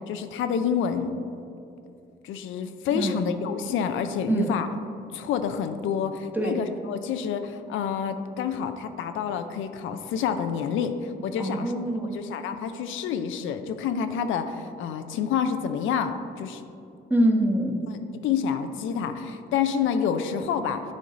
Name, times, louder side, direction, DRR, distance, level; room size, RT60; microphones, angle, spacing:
voice 1, 0.1-1.1 2.2-4.7 5.1-11.7 12.1-16.6 17.9-18.0 18.2-20.8, left 7 dB, 80° left, 8 dB, 0.4 m, -28 dB
voice 2, 11.4-12.1 17.1-17.8, right 1 dB, 10° right, 1 dB, 1.0 m, -24 dB
9.5 x 3.9 x 3.9 m, 2.6 s
cardioid pair, 90°, 20 cm